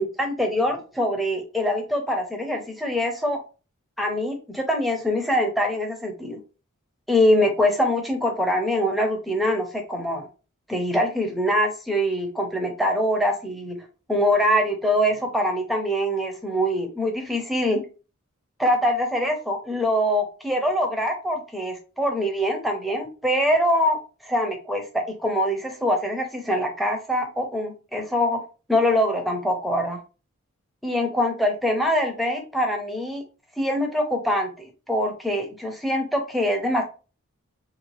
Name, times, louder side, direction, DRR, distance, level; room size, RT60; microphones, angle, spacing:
voice 1, 0.0-3.4 4.0-6.4 7.1-10.3 10.7-13.8 14.1-17.8 18.6-28.4 28.7-30.0 30.8-33.2 33.6-36.8, equal, ahead, 3 dB, 0.6 m, -24 dB
3.2 x 2.7 x 3.1 m, 0.33 s
head